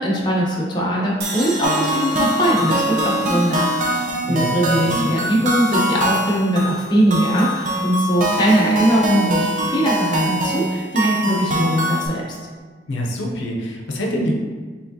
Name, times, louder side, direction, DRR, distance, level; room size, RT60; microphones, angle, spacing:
voice 1, 0.0-12.2, right 1 dB, 25° left, -5 dB, 0.8 m, -20 dB
sound 1, 1.2-4.4, right 2 dB, 70° right, 0.9 m, -33 dB
sound 2, 1.6-12.1, equal, 45° right, 0.5 m, -23 dB
voice 2, 4.3-4.9 12.9-14.3, equal, 85° left, -1 dB, 0.6 m, -25 dB
4.8 x 3.4 x 2.7 m, 1.4 s
head